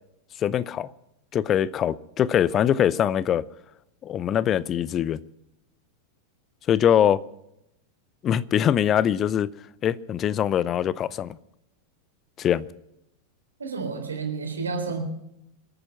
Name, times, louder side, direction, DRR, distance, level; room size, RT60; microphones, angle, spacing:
voice 1, 0.4-0.9 1.3-3.4 4.0-5.2 6.7-7.2 8.2-9.5 9.8-11.4 12.4-12.6, left 10 dB, 30° left, 0.6 m, -23 dB
voice 2, 13.6-15.0, right 4 dB, 75° right, 3.9 m, -30 dB
26.0 x 9.0 x 5.7 m
figure-of-eight pair, 90°, 0 cm